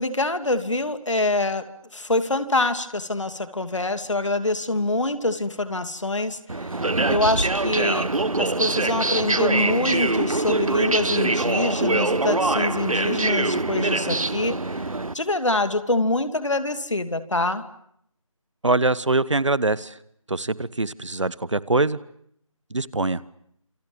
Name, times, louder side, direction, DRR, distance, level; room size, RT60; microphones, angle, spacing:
voice 1, 0.0-6.8 7.1-8.1 8.4-14.8 15.1-17.7, left 2 dB, 60° left, 10 dB, 2.7 m, -25 dB
sound 1, 6.5-15.1, right 2 dB, 85° right, 1.6 m, -23 dB
voice 2, 18.6-20.0 20.3-22.0 22.7-23.2, right 2 dB, 60° right, 18 dB, 1.4 m, -23 dB
28.5 x 28.0 x 7.1 m, 0.70 s
figure-of-eight pair, 180°, 17 cm